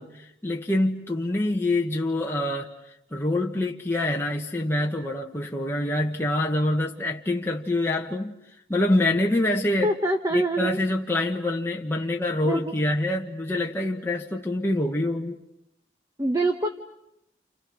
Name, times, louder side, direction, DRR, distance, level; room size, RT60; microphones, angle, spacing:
voice 1, 0.0-2.7 3.1-8.4 8.7-9.9 10.3-15.4, left 1 dB, 15° left, 1.5 m, -26 dB
voice 2, 9.8-10.8 12.4-12.7 16.2-16.7, right 2 dB, 20° right, 1.2 m, -25 dB
30.0 x 30.0 x 6.5 m
head